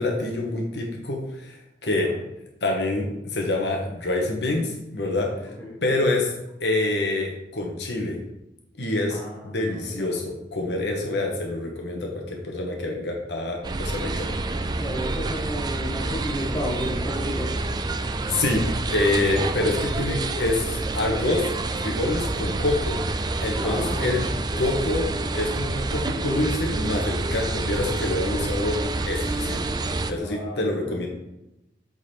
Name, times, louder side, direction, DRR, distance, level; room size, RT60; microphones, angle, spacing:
voice 1, 0.0-1.6 1.8-2.1 2.6-5.5 5.8-6.3 6.6-8.2 8.8-14.3 18.3-21.5 21.8-23.0 23.4-24.3 24.6-25.1 25.3-29.7 30.1-31.1, left 2 dB, 70° left, 0 dB, 1.2 m, -26 dB
voice 2, 5.4-6.1 9.1-10.2 14.7-17.7 23.6-24.2 30.2-31.1, equal, 10° left, -5 dB, 1.2 m, -33 dB
sound 1, 13.6-30.1, right 2 dB, 25° right, 0.4 m, -28 dB
8.0 x 4.1 x 4.3 m, 0.91 s
head